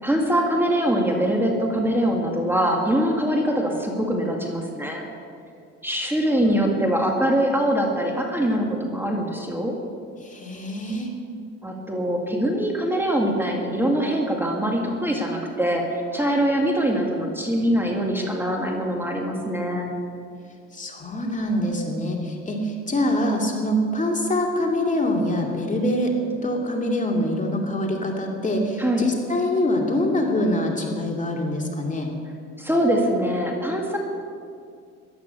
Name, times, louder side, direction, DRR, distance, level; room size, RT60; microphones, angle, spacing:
voice 1, 0.0-5.0 5.8-9.8 11.6-19.9 28.8-29.1 32.6-34.0, equal, 5° right, 0 dB, 2.2 m, -23 dB
voice 2, 10.2-11.1 20.7-26.1 26.4-32.1, left 1 dB, 25° left, 0 dB, 2.4 m, -24 dB
14.5 x 11.5 x 6.8 m, 2.3 s
cardioid pair, 90°, 30 cm